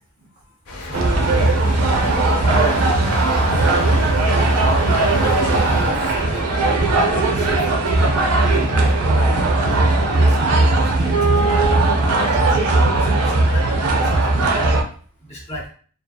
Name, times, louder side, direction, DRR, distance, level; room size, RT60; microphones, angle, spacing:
voice 1, 0.2-0.6 2.1-3.7 7.8-8.2, left 1 dB, 20° right, -1 dB, 0.4 m, -39 dB
sound 1, 0.7-8.1 8.4-8.7, left 2 dB, 75° left, 0.6 m, -33 dB
sound 2, 0.9-14.8, right 2 dB, 75° right, 0.5 m, -17 dB
voice 2, 5.2-11.4 12.0-14.7 15.3-15.7, equal, 30° left, -2 dB, 0.8 m, -34 dB
2.6 x 2.3 x 2.2 m, 0.43 s
head